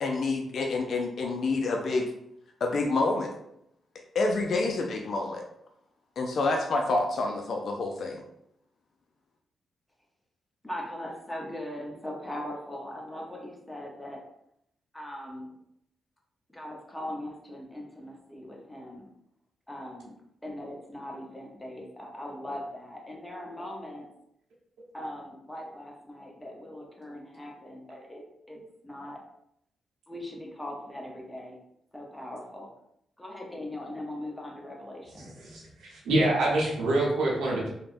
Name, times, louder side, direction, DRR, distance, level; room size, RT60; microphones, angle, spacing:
voice 1, 0.0-2.0 2.6-3.3 4.1-5.4 6.2-8.2, left 3 dB, 65° left, 2 dB, 0.3 m, -28 dB
voice 2, 10.6-14.2 14.9-15.5 16.5-19.1 19.7-20.2 20.4-24.1 24.9-29.2 30.1-31.6 31.9-32.7 33.2-35.3, left 1 dB, 15° left, 0 dB, 0.8 m, -40 dB
voice 3, 36.0-37.7, right 1 dB, 85° right, -4 dB, 0.8 m, -25 dB
3.2 x 2.1 x 2.5 m, 0.76 s
supercardioid pair, 60°, 0 cm